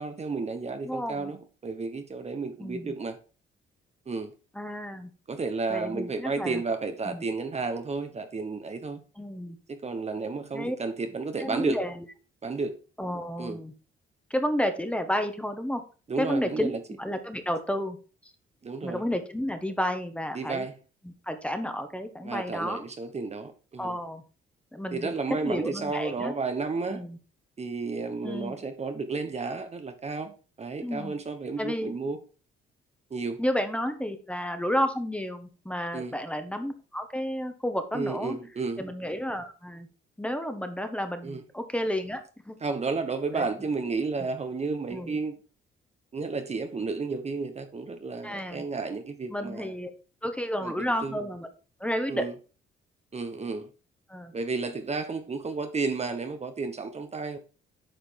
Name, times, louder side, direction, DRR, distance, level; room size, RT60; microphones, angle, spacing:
voice 1, 0.0-3.2 4.1-4.3 5.3-9.0 9.7-11.8 12.4-12.8 13.4-13.6 16.1-16.8 18.6-19.0 20.3-20.7 22.2-24.0 24.9-27.0 27.6-32.2 33.1-33.4 35.9-36.1 37.9-38.8 41.2-41.4 42.6-45.4 46.1-49.7 50.6-51.2 52.1-52.3 53.1-53.7 54.3-57.4, right 4 dB, 35° right, 1.1 m, -32 dB
voice 2, 0.8-1.3 2.6-2.9 4.5-5.1 5.7-6.6 7.0-7.2 9.2-9.6 10.5-10.8 11.4-12.1 13.0-13.7 14.3-15.8 16.2-16.7 17.0-18.0 18.8-20.7 21.0-22.8 23.8-24.2 24.7-26.3 26.9-27.2 28.2-28.6 30.8-31.1 31.6-32.0 33.4-38.4 38.8-39.9 40.2-42.6 43.3-43.4 44.9-45.2 48.2-48.6 49.3-49.9 50.2-51.5 51.8-52.2 54.1-54.3, equal, 5° left, 1.4 m, -31 dB
8.9 x 5.1 x 4.6 m
cardioid pair, 90°, 20 cm